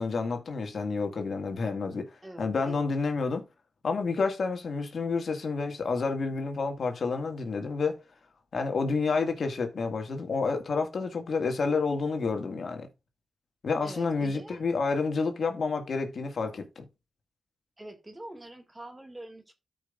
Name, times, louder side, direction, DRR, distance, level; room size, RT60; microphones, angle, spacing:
voice 1, 0.0-2.1 2.4-3.4 3.8-8.0 8.5-12.9 13.6-16.8, left 4 dB, 60° left, 1.9 m, -29 dB
voice 2, 2.2-2.9 13.8-14.6 17.8-19.5, right 1 dB, 15° right, 2.1 m, -45 dB
13.0 x 5.4 x 2.5 m
cardioid pair, 85°, 0 cm